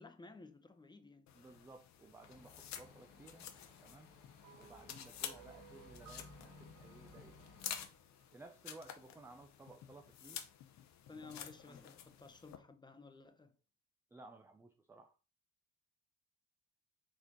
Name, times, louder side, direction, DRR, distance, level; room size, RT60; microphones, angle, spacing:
voice 1, 0.0-1.3 11.1-13.5, left 3 dB, 10° left, 0.7 m, -55 dB
sound 1, 1.3-12.6, left 9 dB, 50° left, 0.7 m, -51 dB
voice 2, 1.3-3.5 3.8-4.1 4.6-7.4 8.3-10.4 11.1-11.2 11.7-11.9 14.1-15.2, right 2 dB, 10° right, 0.3 m, -57 dB
sound 2, 2.2-7.9, left 4 dB, 75° left, 1.2 m, -59 dB
sound 3, 4.4-8.8, right 10 dB, 55° right, 0.8 m, -62 dB
4.3 x 3.5 x 2.9 m
hypercardioid pair, 65°, 35 cm